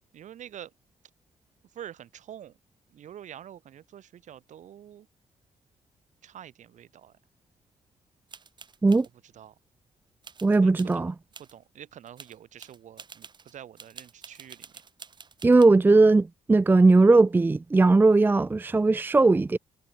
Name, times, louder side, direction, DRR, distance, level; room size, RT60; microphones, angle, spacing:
voice 1, 0.1-0.7 1.7-2.6 2.9-5.1 6.2-7.1 9.2-9.6 10.6-11.1 11.4-14.7, right 10 dB, 65° right, 5.1 m, -46 dB
sound 1, 8.3-9.1 10.2-11.0 11.3-11.5 11.9-15.7, right 5 dB, 35° right, 2.8 m, -48 dB
voice 2, 10.4-11.1 15.4-19.6, right 3 dB, 15° right, 0.5 m, -19 dB
cardioid pair, 125°, 14 cm